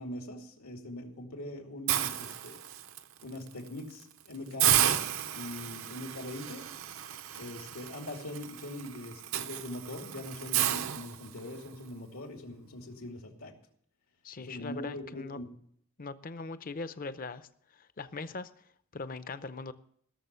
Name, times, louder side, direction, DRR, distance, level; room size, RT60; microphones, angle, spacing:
voice 1, 0.0-2.6 3.2-6.7 7.4-13.5 14.4-15.5, left 1 dB, 90° left, 2 dB, 2.6 m, -42 dB
Hiss, 1.9-3.0 3.5-3.7 4.0-4.1 4.6-11.7, right 11 dB, 70° right, 0.7 m, -32 dB
voice 2, 14.2-15.4 16.0-17.5 17.7-18.5 18.9-19.7, left 3 dB, 40° left, 13 dB, 0.6 m, -40 dB
16.5 x 7.0 x 6.8 m, 0.66 s
head